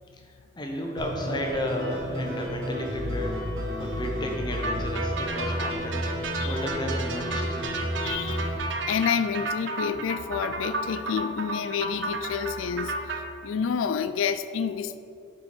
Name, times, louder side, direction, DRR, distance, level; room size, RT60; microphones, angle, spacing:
voice 1, 0.6-3.4 3.8-6.1 6.4-7.7, left 1 dB, 20° left, 1 dB, 0.8 m, -32 dB
sound 1, 1.0-8.5, equal, 80° right, 1.8 m, -31 dB
sound 2, 4.6-13.2, right 2 dB, 65° right, 0.7 m, -33 dB
voice 2, 8.0-8.5 8.9-15.0, left 6 dB, 80° left, 12 dB, 0.3 m, -29 dB
9.5 x 4.6 x 4.3 m, 2.6 s
head